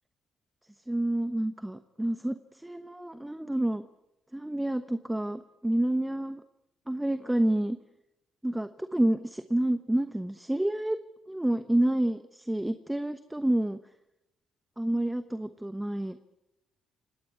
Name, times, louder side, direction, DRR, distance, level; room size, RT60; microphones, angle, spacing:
voice 1, 0.9-3.8 4.3-6.4 6.9-7.8 8.4-11.0 11.3-13.8 14.8-16.3, right 1 dB, 10° right, 11 dB, 1.1 m, -29 dB
29.5 x 18.0 x 8.6 m, 0.91 s
cardioid pair, 90°, 0 cm